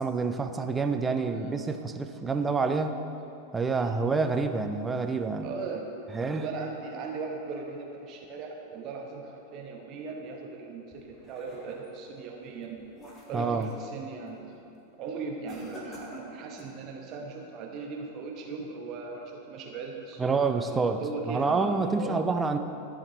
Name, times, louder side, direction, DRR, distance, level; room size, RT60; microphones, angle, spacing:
voice 1, 0.0-3.0 3.5-5.5 6.1-6.4 13.3-13.7 20.2-22.6, right 4 dB, 15° right, 7 dB, 0.5 m, -27 dB
voice 2, 5.4-5.9 6.3-12.8 13.3-14.4 15.0-21.7 21.9-22.2, right 4 dB, 35° right, 1 dB, 1.1 m, -38 dB
sound 1, 10.9-12.0 12.5-13.9 14.3-14.6 15.5-16.8, equal, 20° left, 1.8 m, -47 dB
13.5 x 5.1 x 4.1 m, 2.8 s
figure-of-eight pair, 90°, 0 cm